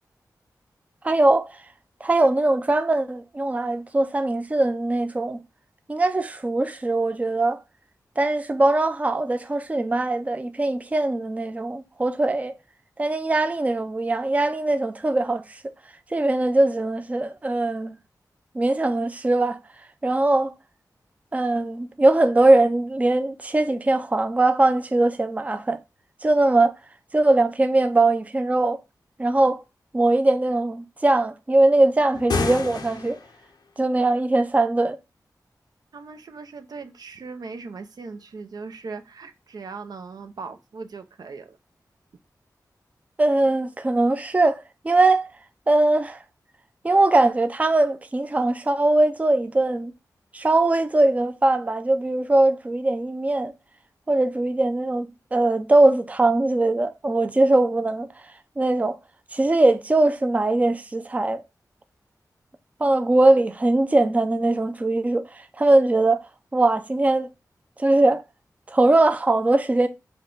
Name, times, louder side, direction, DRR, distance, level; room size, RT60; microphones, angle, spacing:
voice 1, 1.0-1.5 2.0-5.4 5.9-7.6 8.2-12.5 13.0-15.6 16.1-18.0 18.5-19.6 20.0-20.5 21.3-25.8 26.2-26.8 27.1-28.8 29.2-29.6 29.9-33.2 33.8-35.0 43.2-45.3 45.7-46.2 46.8-49.9 50.3-53.5 54.1-58.1 58.6-59.0 59.3-61.4 62.8-66.2 66.5-67.3 67.8-68.2 68.7-69.9, right 2 dB, 20° right, 0.4 m, -21 dB
sound 1, 32.1-33.4, left 4 dB, 90° left, 0.7 m, -28 dB
voice 2, 35.9-41.6, right 4 dB, 70° right, 0.6 m, -39 dB
5.2 x 2.3 x 3.8 m
wide cardioid pair, 85°, 7 cm